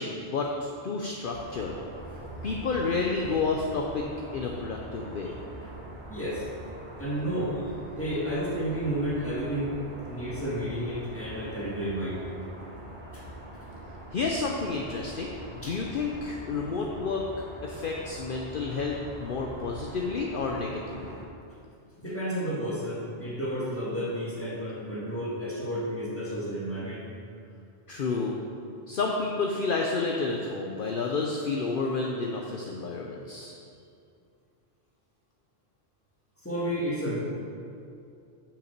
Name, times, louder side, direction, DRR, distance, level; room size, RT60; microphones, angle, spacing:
voice 1, 0.0-1.8 2.4-4.0 4.3-5.4 14.1-15.3 15.5-17.2 17.6-21.1 27.9-28.4 28.9-33.6, left 4 dB, 55° left, 0 dB, 0.8 m, -30 dB
sound 1, 1.3-21.2, right 1 dB, 45° right, 1.7 m, -43 dB
voice 2, 6.1-6.5 7.0-7.7 8.0-9.7 10.1-12.2 13.1-13.2 15.6-15.8 22.0-27.0 36.4-37.2, equal, 10° left, -7 dB, 1.9 m, -31 dB
7.0 x 5.8 x 6.6 m, 2.5 s
omnidirectional pair, 1.2 m